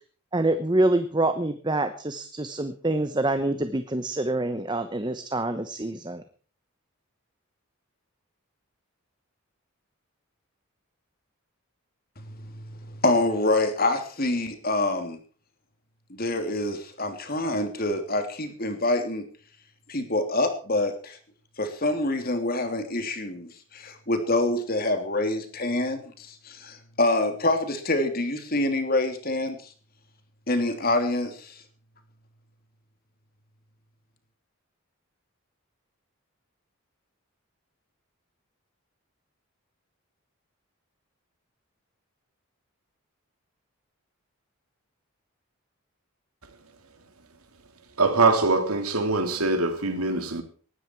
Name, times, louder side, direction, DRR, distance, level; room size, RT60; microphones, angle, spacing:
voice 1, 0.3-6.2, right 2 dB, 20° right, 0.9 m, -26 dB
voice 2, 13.0-15.2 16.1-19.2 19.9-21.2 21.6-29.6 30.5-31.6, left 2 dB, 45° left, 3.0 m, -26 dB
voice 3, 48.0-50.4, right 3 dB, 90° right, 3.1 m, -23 dB
19.5 x 13.5 x 4.6 m
head